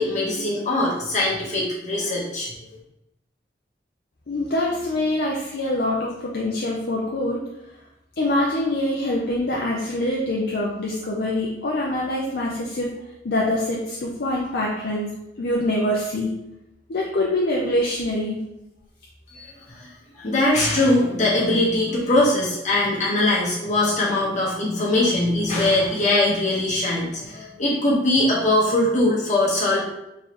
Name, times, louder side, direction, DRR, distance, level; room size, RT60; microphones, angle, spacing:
voice 1, 0.0-2.5 19.3-19.9 20.1-29.8, left 2 dB, 40° left, -5 dB, 1.2 m, -21 dB
voice 2, 4.3-7.4 8.2-12.9 13.2-15.1 15.4-16.3 16.9-18.4, left 1 dB, 60° left, -3 dB, 0.5 m, -24 dB
3.7 x 3.1 x 3.0 m, 0.89 s
head